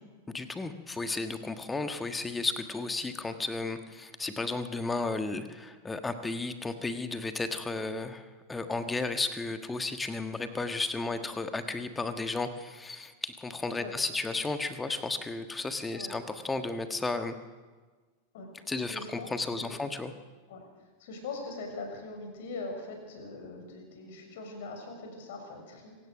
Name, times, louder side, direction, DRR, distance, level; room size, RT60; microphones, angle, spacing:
voice 1, 0.3-17.3 18.7-20.1, left 3 dB, 10° left, 8 dB, 1.5 m, -33 dB
voice 2, 18.9-19.8 20.5-20.6 21.0-26.0, left 3 dB, 55° left, 4 dB, 6.5 m, -41 dB
25.5 x 16.5 x 6.4 m, 1.4 s
figure-of-eight pair, 90°, 0 cm